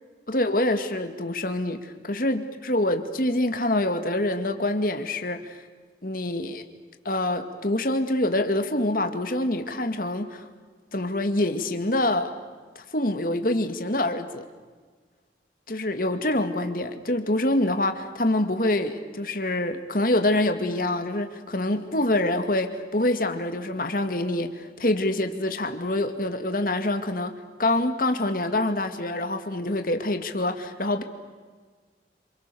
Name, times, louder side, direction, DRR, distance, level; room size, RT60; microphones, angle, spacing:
voice 1, 0.3-5.6 6.0-6.6 7.1-10.5 10.9-12.3 12.8-14.5 15.7-31.0, left 1 dB, 50° left, 6 dB, 2.1 m, -26 dB
28.0 x 27.0 x 7.0 m, 1.5 s
head